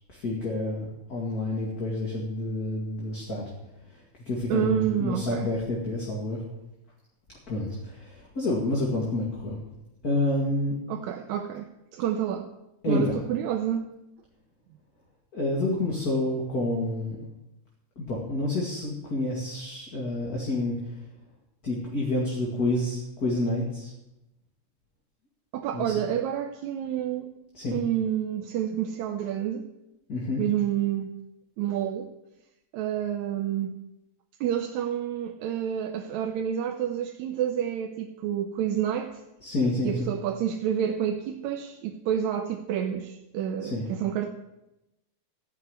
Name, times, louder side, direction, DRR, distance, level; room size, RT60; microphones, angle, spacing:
voice 1, 0.1-3.5 3.9-6.4 7.5-9.6 10.0-10.7 12.8-13.1 15.3-17.2 18.0-20.8 21.6-23.9 25.7-25.9 27.5-27.8 30.1-30.4 39.4-40.1 43.6-43.8, left 2 dB, 35° left, -3 dB, 2.4 m, -28 dB
voice 2, 4.5-5.5 10.9-12.5 12.9-13.9 25.5-27.3 27.7-29.7 30.4-31.1 31.6-32.1 32.7-33.7 34.4-39.2 39.8-44.3, right 10 dB, 80° right, 4 dB, 2.1 m, -29 dB
15.0 x 5.5 x 9.4 m, 0.93 s
omnidirectional pair, 3.3 m